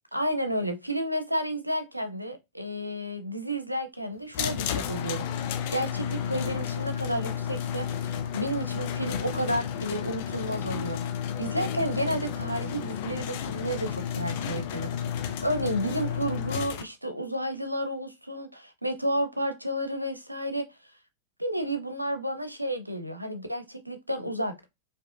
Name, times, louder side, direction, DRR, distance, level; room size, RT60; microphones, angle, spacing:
voice 1, 0.1-5.3 5.7-11.0 11.4-20.7 21.4-24.7, right 1 dB, 90° right, 0.5 m, -31 dB
sound 1, 4.3-16.8, left 8 dB, 50° left, 0.5 m, -32 dB
4.7 x 2.5 x 2.4 m
figure-of-eight pair, 90°, 0 cm